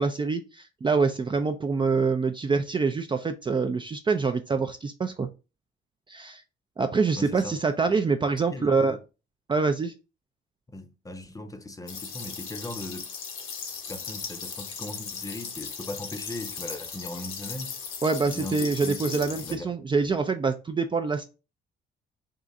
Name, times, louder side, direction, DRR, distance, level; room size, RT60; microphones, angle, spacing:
voice 1, 0.0-5.3 6.1-6.4 6.8-9.0 9.5-9.9 18.0-21.2, right 4 dB, 25° right, 0.4 m, -25 dB
voice 2, 7.1-7.6 7.9-8.0 8.5-9.0 10.7-13.1 13.9-17.8 18.2-19.7 20.0-20.2, left 2 dB, 15° left, 0.7 m, -39 dB
sound 1, 11.9-19.5, left 6 dB, 85° left, 1.2 m, -37 dB
3.7 x 2.4 x 4.0 m
cardioid pair, 90°, 20 cm